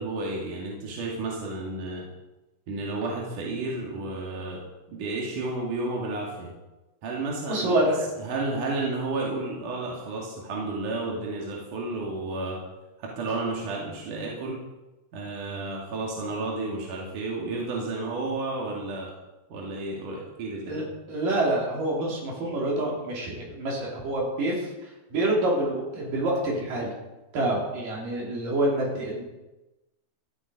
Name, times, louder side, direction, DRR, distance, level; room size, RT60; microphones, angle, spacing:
voice 1, 0.0-2.0 2.7-4.6 4.9-6.5 7.0-7.8 8.2-12.6 13.0-14.6 15.1-19.1 19.5-20.8, right 2 dB, 70° right, -3 dB, 3.7 m, -32 dB
voice 2, 7.5-8.1 20.7-26.9 27.3-29.2, right 1 dB, 90° right, -2 dB, 5.0 m, -27 dB
14.0 x 12.5 x 5.3 m, 1.0 s
omnidirectional pair, 3.7 m